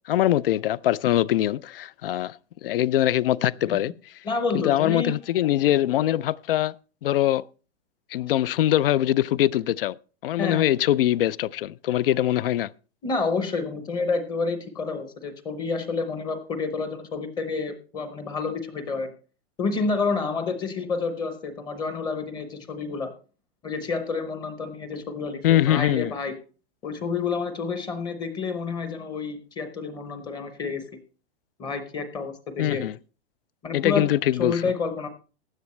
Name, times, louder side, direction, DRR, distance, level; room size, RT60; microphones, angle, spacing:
voice 1, 0.1-3.9 4.5-6.7 7.0-7.4 8.1-10.0 10.2-12.7 25.4-26.1 32.6-32.9 33.7-34.6, left 13 dB, 55° left, 0.4 m, -23 dB
voice 2, 4.2-5.1 10.4-10.7 13.0-19.1 19.6-23.1 23.6-26.3 26.8-30.9 31.6-32.8 33.6-35.1, left 4 dB, 15° left, 0.8 m, -29 dB
15.5 x 10.0 x 3.1 m
hypercardioid pair, 160°, 33 cm